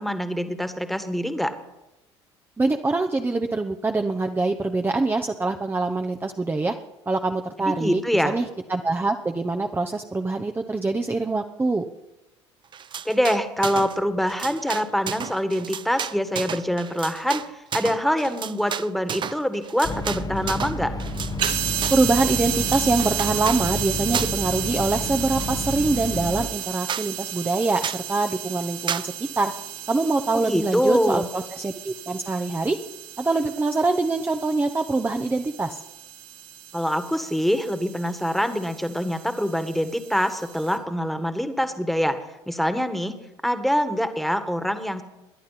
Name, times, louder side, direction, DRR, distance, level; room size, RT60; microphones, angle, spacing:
voice 1, 0.0-1.5 7.6-8.4 13.1-20.9 30.3-31.3 36.7-42.2 42.5-45.0, equal, ahead, 9 dB, 1.8 m, -25 dB
voice 2, 2.6-6.7 7.1-11.9 21.9-29.5 29.9-32.8 33.2-35.8, right 3 dB, 15° right, 6 dB, 1.0 m, -24 dB
sound 1, 12.7-14.0 14.2-22.1 22.5-23.6 24.1-24.5 24.8-25.8 26.2-26.3 26.6-26.7 26.9-27.1 27.8-28.1 28.9-29.1, right 8 dB, 30° right, 0.6 m, -32 dB
sound 2, 19.8-26.5, left 2 dB, 25° left, 1.1 m, -30 dB
sound 3, 21.4-40.8, right 10 dB, 60° right, 2.8 m, -33 dB
28.5 x 11.0 x 4.3 m, 0.98 s
figure-of-eight pair, 65°, 15 cm